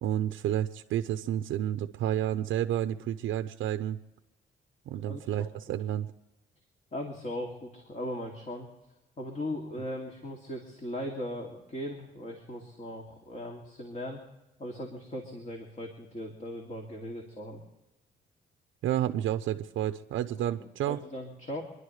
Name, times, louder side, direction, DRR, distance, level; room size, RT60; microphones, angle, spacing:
voice 1, 0.0-4.0 4.9-6.1 18.8-21.0, right 11 dB, 75° right, 8 dB, 0.6 m, -30 dB
voice 2, 4.9-5.5 6.9-8.7 9.2-14.2 14.6-17.6 20.6-21.6, left 1 dB, 35° left, 1 dB, 2.5 m, -38 dB
26.5 x 11.0 x 3.2 m, 1.0 s
cardioid pair, 90°, 20 cm